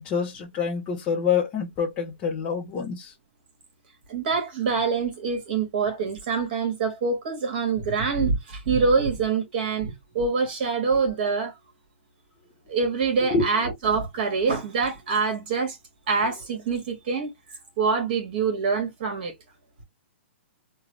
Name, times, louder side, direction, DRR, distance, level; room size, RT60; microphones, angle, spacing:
voice 1, 0.0-3.1 13.3-13.5, left 6 dB, 20° left, 0.7 m, -26 dB
voice 2, 4.1-11.5 12.7-15.8 16.1-17.3 17.8-19.3, right 5 dB, 45° right, 1.9 m, -25 dB
3.7 x 2.3 x 3.2 m
hypercardioid pair, 160°, 7 cm